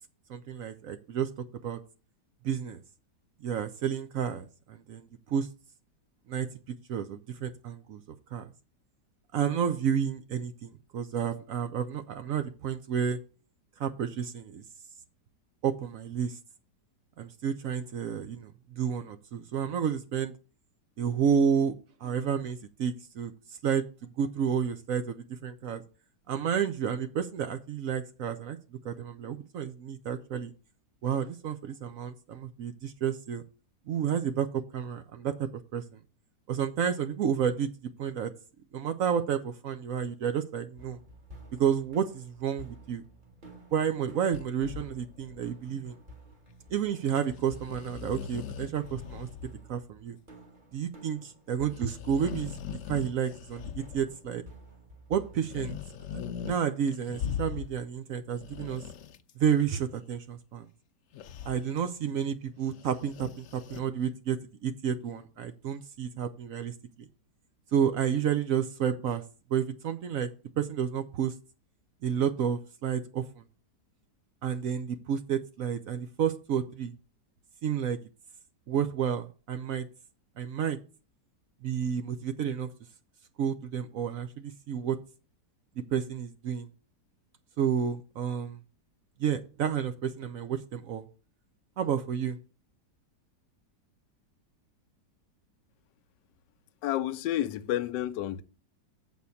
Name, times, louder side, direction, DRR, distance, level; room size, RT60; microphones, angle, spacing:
voice 1, 0.3-1.3 1.6-1.8 2.4-2.8 3.4-5.5 6.3-6.5 6.9-8.0 8.3-8.5 9.3-13.2 13.8-14.6 15.6-16.4 17.2-20.4 21.0-21.7 22.0-23.3 23.6-23.8 24.2-25.8 26.3-28.6 28.8-30.5 31.0-33.4 33.9-35.8 36.5-37.7 38.0-38.3 38.7-41.0 41.6-43.0 43.7-45.9 46.7-49.3 49.7-50.2 50.7-52.5 52.9-54.4 55.1-55.8 56.1-56.2 56.4-58.8 59.4-60.7 61.4-66.7 67.7-69.2 69.5-70.3 70.6-71.3 72.0-73.4 74.4-76.9 77.6-78.0 78.7-79.9 80.4-80.8 81.6-82.7 83.4-85.0 85.9-86.7 87.6-88.6 89.2-91.0 91.8-92.4, right 8 dB, 65° right, 0.9 m, -30 dB
sound 1, 40.8-55.8, right 1 dB, 30° right, 1.3 m, -52 dB
sound 2, 44.3-45.5 47.1-47.3 47.5-49.5 49.8-49.9 51.7-54.3 55.4-56.6 56.9-57.8 58.2-59.6 61.1-61.6 62.7-63.8, left 8 dB, 65° left, 0.8 m, -40 dB
voice 2, 96.8-98.4, left 13 dB, 85° left, 1.2 m, -30 dB
7.9 x 4.2 x 7.0 m
omnidirectional pair, 1.8 m